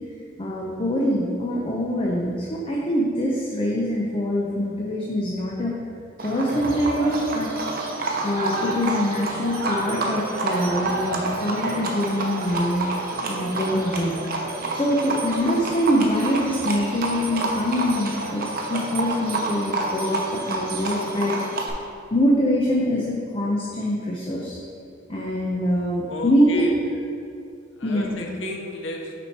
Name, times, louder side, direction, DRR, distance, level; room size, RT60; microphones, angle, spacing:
voice 1, 0.4-5.7 6.2-7.5 8.2-12.9 13.3-14.1 14.7-21.3 22.1-24.6 25.1-26.7 27.8-28.2, equal, 30° left, -3 dB, 0.6 m, -24 dB
Livestock farm animals working animals, 6.2-21.7, right 2 dB, 50° right, 0.7 m, -28 dB
voice 2, 26.1-26.8 27.8-29.2, left 2 dB, 80° left, 2 dB, 0.7 m, -33 dB
6.0 x 4.3 x 4.6 m, 2.5 s
head